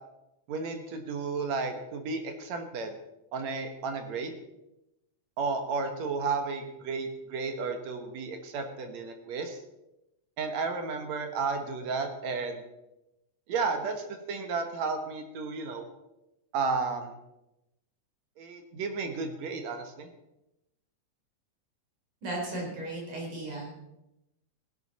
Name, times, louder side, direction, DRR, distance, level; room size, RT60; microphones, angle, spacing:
voice 1, 0.5-2.9 3.3-4.4 5.4-9.6 10.4-12.6 13.5-15.9 16.5-17.1 18.4-20.1, right 4 dB, 70° right, 6 dB, 2.4 m, -33 dB
voice 2, 22.2-23.7, right 2 dB, 90° right, -2 dB, 5.5 m, -35 dB
16.5 x 11.0 x 4.1 m, 0.91 s
omnidirectional pair, 3.4 m